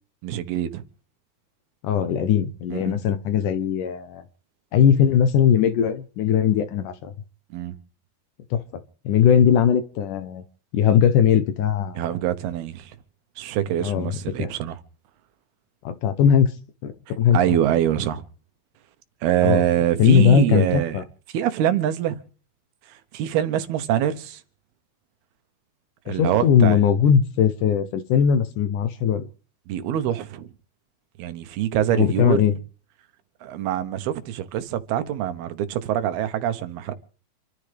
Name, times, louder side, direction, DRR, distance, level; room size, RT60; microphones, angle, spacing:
voice 1, 0.2-0.8 2.7-3.0 7.5-7.8 12.0-13.0 13.4-14.8 17.1-18.2 19.2-21.0 21.3-22.2 22.9-24.4 26.1-26.8 29.7-30.5 31.2-32.4 33.4-36.9, right 11 dB, 90° right, 3.0 m, -24 dB
voice 2, 1.8-4.2 4.7-7.1 8.5-8.6 9.1-10.4 10.7-12.1 13.8-14.1 14.4-14.5 15.8-16.5 16.8-17.4 19.4-19.6 20.0-21.0 26.1-29.2 32.0-32.6, left 8 dB, 70° left, 2.2 m, -19 dB
28.0 x 13.5 x 3.4 m
omnidirectional pair, 4.3 m